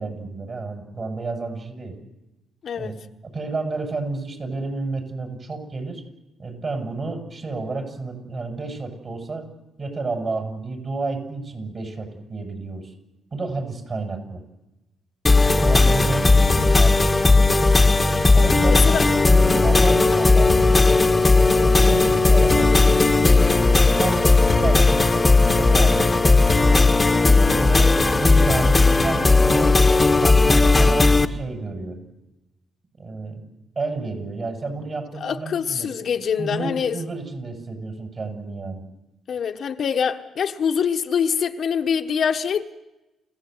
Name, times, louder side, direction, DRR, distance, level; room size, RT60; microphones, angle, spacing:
voice 1, 0.0-2.0 2.7-2.9 3.3-6.0 6.4-9.5 9.8-12.9 13.3-14.4 15.4-17.1 18.3-19.0 19.3-21.1 21.5-23.5 24.0-24.3 24.5-26.9 27.4-29.8 30.1-32.0 33.0-33.4 33.8-35.9 36.4-38.8, right 3 dB, 40° right, 7.0 m, -30 dB
voice 2, 2.6-2.9 15.9-16.1 18.7-19.1 19.4-19.7 35.2-37.0 39.3-42.6, left 7 dB, 60° left, 1.4 m, -24 dB
sound 1, 15.3-31.3, left 3 dB, 20° left, 1.5 m, -16 dB
29.0 x 16.5 x 8.0 m
cardioid pair, 90°, 0 cm